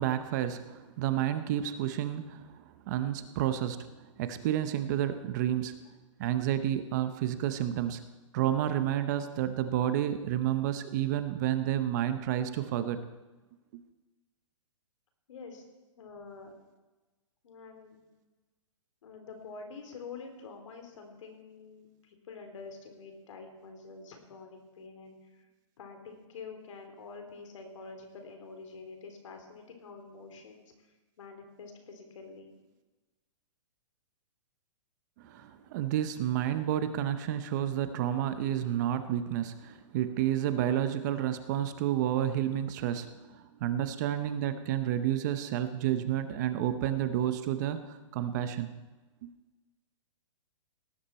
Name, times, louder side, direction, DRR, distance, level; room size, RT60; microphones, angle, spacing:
voice 1, 0.0-5.8 6.2-8.0 8.3-13.0 13.7-13.8 35.2-48.7 49.2-49.3, right 11 dB, 35° right, 10 dB, 0.8 m, -30 dB
voice 2, 15.3-15.6 16.0-16.5 17.4-18.0 19.0-25.5 25.8-30.7 31.2-32.5, left 4 dB, 65° left, 5 dB, 3.3 m, -47 dB
18.5 x 10.0 x 4.3 m, 1.2 s
hypercardioid pair, 160°, 17 cm